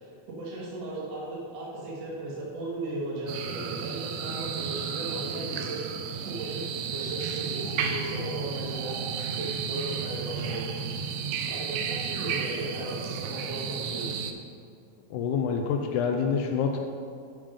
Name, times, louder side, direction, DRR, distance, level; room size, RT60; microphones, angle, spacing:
voice 1, 0.0-5.9 6.3-9.0 9.4-11.1 11.5-14.1, right 2 dB, 60° right, -5 dB, 2.7 m, -36 dB
sound 1, 3.3-14.3, right 6 dB, 80° right, 1.7 m, -33 dB
voice 2, 15.1-16.8, left 6 dB, 85° left, 3 dB, 2.0 m, -27 dB
11.0 x 5.1 x 5.2 m, 2.2 s
omnidirectional pair, 3.5 m